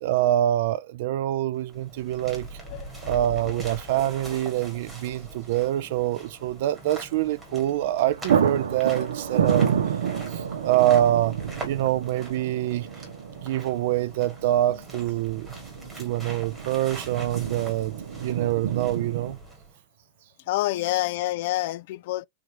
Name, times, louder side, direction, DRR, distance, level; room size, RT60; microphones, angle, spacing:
voice 1, 0.0-2.5 3.0-9.7 10.3-11.4 11.6-12.9 13.3-15.6 16.0-19.4, right 13 dB, 40° right, 0.3 m, -25 dB
sound 1, 1.3-1.4 3.0-3.4 3.7-3.8 7.5-7.7 8.0-19.4, right 8 dB, 85° right, 0.8 m, -29 dB
sound 2, 1.5-19.8, right 1 dB, 5° right, 1.4 m, -42 dB
voice 2, 20.5-22.3, left 16 dB, 40° left, 0.3 m, -27 dB
4.6 x 2.5 x 2.9 m
supercardioid pair, 175°, 0 cm